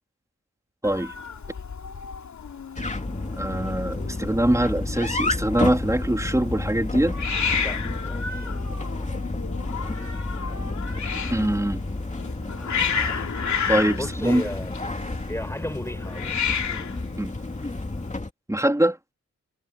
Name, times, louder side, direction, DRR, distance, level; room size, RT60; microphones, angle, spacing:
Hiss, 0.8-18.2, left 6 dB, 75° left, 3.0 m, -32 dB
voice 1, 0.8-1.1 3.4-7.2 11.3-11.8 13.7-14.4 17.2-17.3 18.5-19.0, right 1 dB, 10° right, 3.7 m, -23 dB
sound 1, 2.8-18.3, left 2 dB, 25° left, 2.6 m, -31 dB
voice 2, 7.5-8.5 13.9-16.4, left 1 dB, 10° left, 7.9 m, -36 dB
cardioid pair, 70°, 29 cm